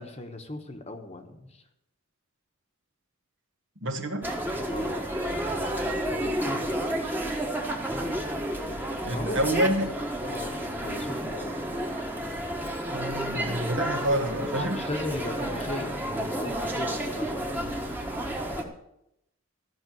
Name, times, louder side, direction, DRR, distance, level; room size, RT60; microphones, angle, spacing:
voice 1, 0.0-1.6 4.7-5.0 6.1-7.0 9.0-9.7 10.2-11.7 14.5-18.0, left 2 dB, 30° left, 6 dB, 1.2 m, -38 dB
voice 2, 3.8-4.3 9.0-9.9 12.9-14.8, equal, 65° right, 5 dB, 1.5 m, -28 dB
sound 1, 4.2-18.6, right 1 dB, 10° right, 1.3 m, -31 dB
14.0 x 6.0 x 7.8 m, 0.82 s
head